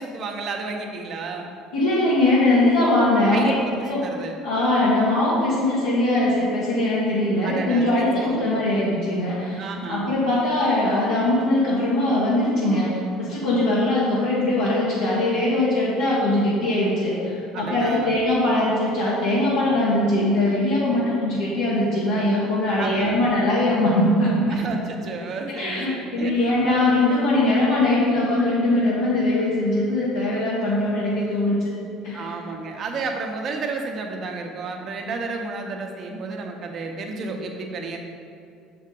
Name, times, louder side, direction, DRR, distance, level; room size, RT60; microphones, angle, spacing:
voice 1, 0.0-1.5 3.3-4.3 7.4-8.6 9.6-10.1 17.5-18.2 22.8-23.2 24.5-26.5 32.1-38.0, right 3 dB, 50° right, 3 dB, 0.8 m, -32 dB
voice 2, 1.7-3.5 3.8-4.0 4.4-24.6 25.5-31.7 32.0-32.4, left 1 dB, 85° left, -9 dB, 1.1 m, -21 dB
6.4 x 4.6 x 3.8 m, 2.5 s
hypercardioid pair, 75°, 0 cm